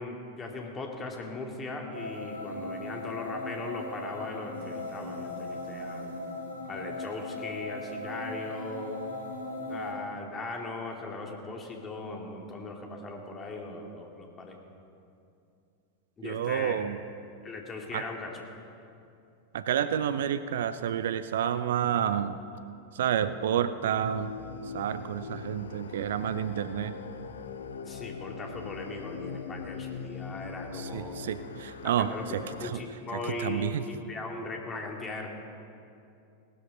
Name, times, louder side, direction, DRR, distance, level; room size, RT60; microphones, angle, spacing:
voice 1, 0.0-6.1 6.7-9.0 9.7-14.6 16.2-16.8 17.4-18.4 27.8-31.2 32.0-32.3 32.6-35.3, left 3 dB, 20° left, 1 dB, 2.4 m, -38 dB
sound 1, 1.9-9.9, left 2 dB, 80° right, 2.4 m, -38 dB
voice 2, 16.2-17.0 17.9-18.1 19.5-22.4 22.9-24.3 24.6-27.0 30.7-32.8 33.4-33.8, right 9 dB, 60° right, 13 dB, 0.5 m, -30 dB
sound 2, 23.9-32.7, left 5 dB, 65° left, 0.7 m, -41 dB
18.0 x 12.5 x 5.2 m, 2.5 s
figure-of-eight pair, 90°, 0 cm